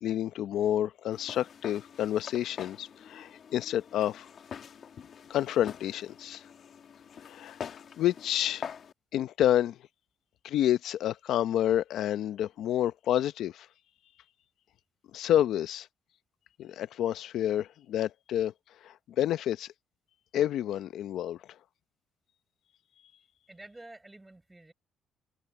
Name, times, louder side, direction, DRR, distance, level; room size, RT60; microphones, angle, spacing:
voice 1, 0.0-4.3 5.3-6.4 7.2-8.6 9.1-9.8 10.4-13.7 15.1-15.9 16.6-18.5 18.8-19.7 20.3-21.4, left 11 dB, 70° left, 0.7 m, -29 dB
Walk footsteps, 1.1-8.9, left 7 dB, 45° left, 1.5 m, -45 dB
voice 2, 23.5-24.7, right 2 dB, 10° right, 4.9 m, -49 dB
cardioid pair, 135°, 0 cm